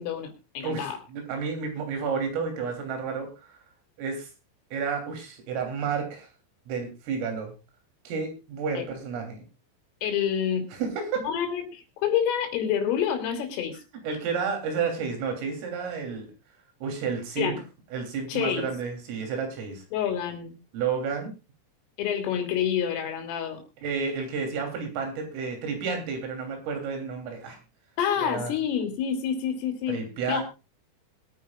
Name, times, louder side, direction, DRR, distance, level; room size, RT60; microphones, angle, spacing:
voice 1, 0.0-1.0 8.8-8.9 10.0-10.7 11.2-13.8 17.4-17.6 18.3-18.7 19.9-20.5 22.0-23.6 28.0-30.0 30.3-30.4, left 8 dB, 80° left, 5 dB, 5.1 m, -28 dB
voice 2, 0.6-3.3 4.0-4.3 4.7-6.3 6.7-7.5 8.1-9.4 10.7-11.2 13.7-13.8 14.0-16.3 16.8-17.5 17.9-19.8 20.7-21.3 23.8-27.6 28.2-28.5 29.9-30.4, right 5 dB, 80° right, 4 dB, 5.8 m, -31 dB
23.0 x 9.4 x 2.4 m, 0.29 s
omnidirectional pair, 5.8 m